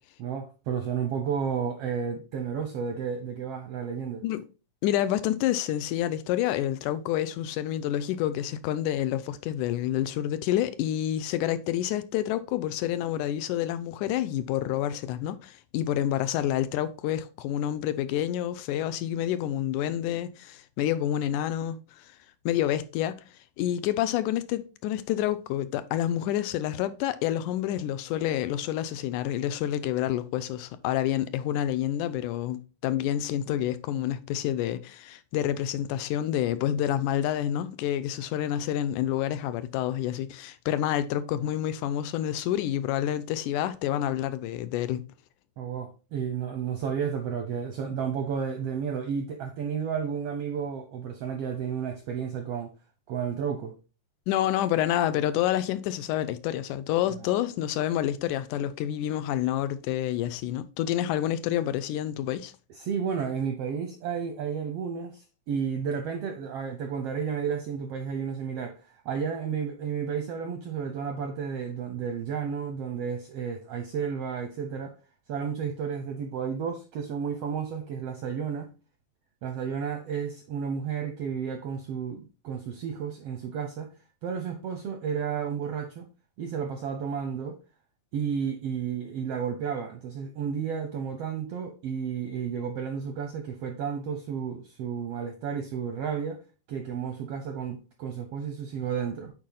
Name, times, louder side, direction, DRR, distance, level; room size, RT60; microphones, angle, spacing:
voice 1, 0.2-4.2 45.6-52.7 53.1-53.7 62.7-74.9 75.3-78.7 79.4-83.9 84.2-86.1 86.4-87.6 88.1-96.4 96.7-99.3, right 7 dB, 75° right, 1.4 m, -32 dB
voice 2, 4.8-22.1 22.5-23.2 23.6-45.0 54.3-62.5, left 12 dB, 80° left, 2.0 m, -28 dB
8.7 x 4.1 x 3.9 m
omnidirectional pair, 3.7 m